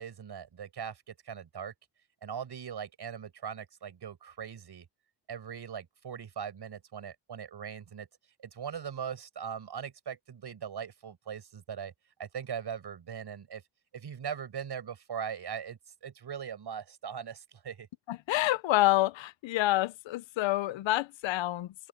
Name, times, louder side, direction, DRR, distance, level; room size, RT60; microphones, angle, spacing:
voice 1, 0.0-1.7 2.2-4.9 5.3-8.1 8.4-11.9 12.2-13.6 13.9-17.9, right 7 dB, 60° right, 8.0 m, -40 dB
voice 2, 18.1-21.7, left 16 dB, 75° left, 1.0 m, -28 dB
open air
supercardioid pair, 60°, 46 cm